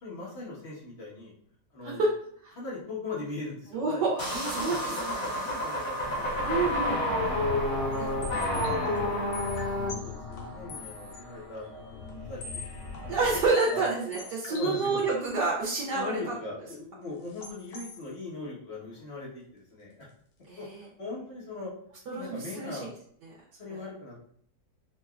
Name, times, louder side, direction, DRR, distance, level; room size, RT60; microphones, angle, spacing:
voice 1, 0.0-1.3 1.7-2.1 2.5-4.0 4.3-6.6 7.1-9.2 9.9-13.2 13.7-13.8 14.5-15.0 15.9-20.1 20.6-20.7 21.0-21.7 22.1-22.9 23.6-24.2, left 3 dB, 40° left, -6 dB, 1.4 m, -40 dB
voice 2, 3.7-4.2 4.5-5.3 6.4-7.0 8.0-8.1 13.1-16.3 20.5-20.8 22.1-22.8 23.7-23.8, right 3 dB, 90° right, -5 dB, 1.4 m, -28 dB
sound 1, 4.2-9.9, left 1 dB, 15° left, 1.3 m, -30 dB
sound 2, 6.0-13.5, left 4 dB, 85° left, 1.8 m, -40 dB
sound 3, 7.9-11.2 11.6-11.7 12.1-12.2 12.4-15.1 17.3-18.1, left 4 dB, 70° left, 1.2 m, -44 dB
4.8 x 2.2 x 2.4 m, 0.62 s
omnidirectional pair, 1.8 m